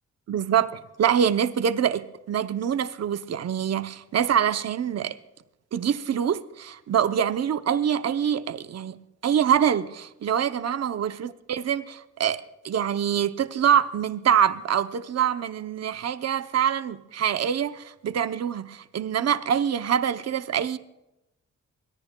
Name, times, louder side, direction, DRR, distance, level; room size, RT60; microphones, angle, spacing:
voice 1, 0.3-5.2 5.7-9.0 9.2-20.8, right 8 dB, 55° right, 0.6 m, -25 dB
23.5 x 21.5 x 2.2 m
wide cardioid pair, 115°, 30 cm